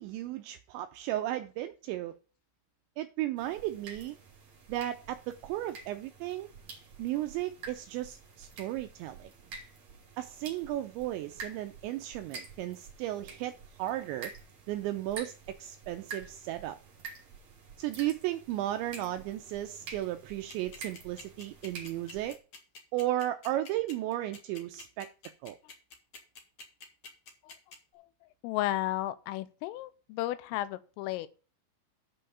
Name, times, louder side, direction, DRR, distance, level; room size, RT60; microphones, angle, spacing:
voice 1, 0.0-2.2 3.0-4.2 4.7-6.5 7.0-9.3 10.2-14.3 14.7-16.8 17.8-22.4 22.9-25.1 25.4-25.6, right 14 dB, 85° right, 2.6 m, -35 dB
sound 1, 3.4-22.4, right 4 dB, 40° right, 2.8 m, -49 dB
sound 2, 20.3-27.8, left 4 dB, 50° left, 2.2 m, -48 dB
voice 2, 28.4-31.3, left 15 dB, 90° left, 3.3 m, -33 dB
8.5 x 5.6 x 6.9 m
omnidirectional pair, 5.8 m